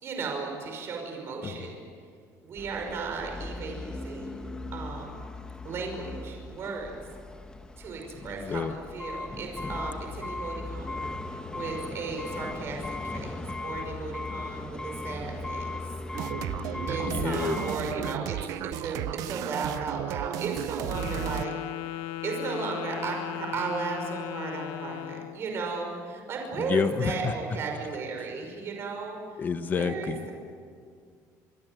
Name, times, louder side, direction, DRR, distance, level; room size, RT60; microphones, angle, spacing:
voice 1, 0.0-1.8 2.4-4.4 4.7-5.1 5.6-6.9 7.8-11.1 11.5-15.7 16.9-21.5 21.8-29.2 29.7-30.3, right 4 dB, 40° right, 2 dB, 5.6 m, -35 dB
sound 1, 2.6-18.1, left 2 dB, 10° left, 1.3 m, -37 dB
voice 2, 8.3-8.7 17.0-17.6 26.6-27.3 29.4-30.3, left 6 dB, 30° left, 10 dB, 1.2 m, -29 dB
sound 2, 16.1-21.5, right 14 dB, 65° right, 0.6 m, -34 dB
Wind instrument woodwind instrument, 20.8-25.4, left 13 dB, 80° left, 1.0 m, -37 dB
26.0 x 23.5 x 7.8 m, 2.1 s
cardioid pair, 155°, 6 cm